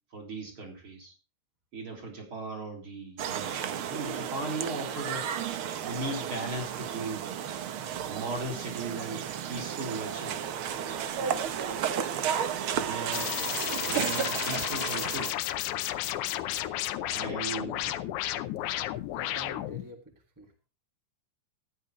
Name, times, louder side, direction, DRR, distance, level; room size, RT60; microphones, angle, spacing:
voice 1, 0.1-1.1 1.7-5.4 5.8-7.4 8.1-10.4 12.7-15.3 17.1-17.8, right 2 dB, 40° right, 1 dB, 4.4 m, -37 dB
sound 1, 3.2-15.3, right 8 dB, 65° right, 1.3 m, -33 dB
sound 2, 13.1-19.9, left 13 dB, 75° left, 2.1 m, -32 dB
voice 2, 18.9-20.7, left 1 dB, 10° right, 3 dB, 1.5 m, -48 dB
15.0 x 10.5 x 3.1 m, 0.32 s
omnidirectional pair, 3.6 m